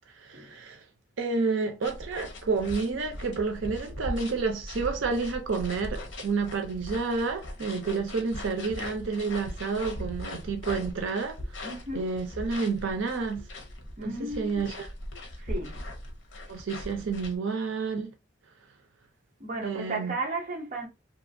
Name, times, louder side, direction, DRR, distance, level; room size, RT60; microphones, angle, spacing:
voice 1, 0.1-0.8 1.2-11.7 11.9-13.5 14.0-14.9 16.5-18.1 19.6-20.1, right 4 dB, 80° right, 0.5 m, -30 dB
sound 1, 1.8-17.4, left 1 dB, 70° left, 0.8 m, -40 dB
voice 2, 11.6-12.1 14.0-14.6 15.4-15.8 19.4-20.9, right 2 dB, 40° right, 0.8 m, -34 dB
2.8 x 2.4 x 2.6 m
head